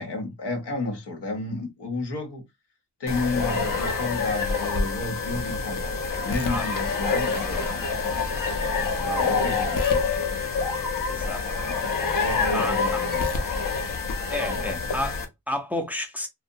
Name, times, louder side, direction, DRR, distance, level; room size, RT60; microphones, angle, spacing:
voice 1, 0.0-2.4 3.0-10.1 11.6-11.8 12.2-13.3 14.5-14.8, left 3 dB, 85° left, 0.9 m, -32 dB
sound 1, 3.1-15.2, left 4 dB, 55° left, 0.7 m, -26 dB
voice 2, 7.4-7.9 9.0-9.4 11.1-11.5 12.5-13.0 14.3-16.3, left 1 dB, 5° right, 0.5 m, -32 dB
2.5 x 2.1 x 2.6 m
wide cardioid pair, 85°, 40 cm